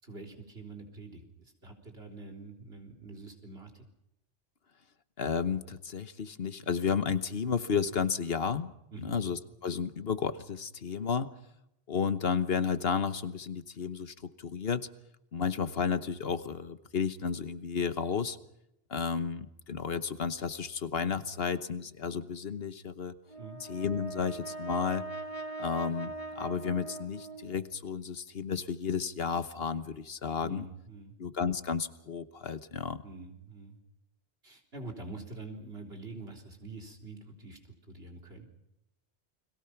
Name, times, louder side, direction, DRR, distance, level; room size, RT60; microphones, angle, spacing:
voice 1, 0.0-3.8 8.9-9.2 23.4-23.6 30.4-31.2 33.0-33.8 34.4-38.5, right 3 dB, 70° right, 3 dB, 4.1 m, -46 dB
voice 2, 5.2-8.7 9.0-11.3 11.9-14.9 15.3-18.4 18.9-23.1 23.7-25.1 25.6-30.6 31.2-33.0, left 6 dB, 65° left, 12 dB, 1.3 m, -32 dB
Brass instrument, 23.3-27.7, right 3 dB, 30° left, 1.5 m, -41 dB
30.0 x 22.0 x 5.9 m, 0.82 s
omnidirectional pair, 1.1 m